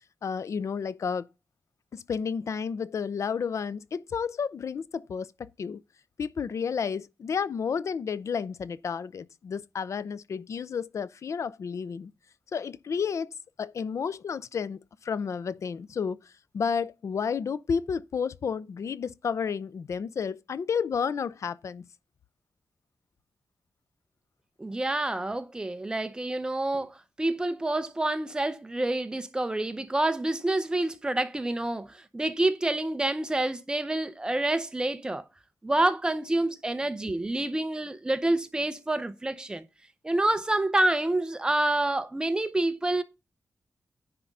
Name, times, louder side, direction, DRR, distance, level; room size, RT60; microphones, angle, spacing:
voice 1, 0.2-1.3 1.9-5.8 6.2-12.1 12.5-13.3 13.6-16.2 16.5-21.9, left 6 dB, 55° left, 0.5 m, -31 dB
voice 2, 24.6-35.2 35.6-39.6 40.0-43.0, right 2 dB, 15° right, 0.9 m, -28 dB
10.0 x 3.7 x 5.4 m
wide cardioid pair, 155°, 6 cm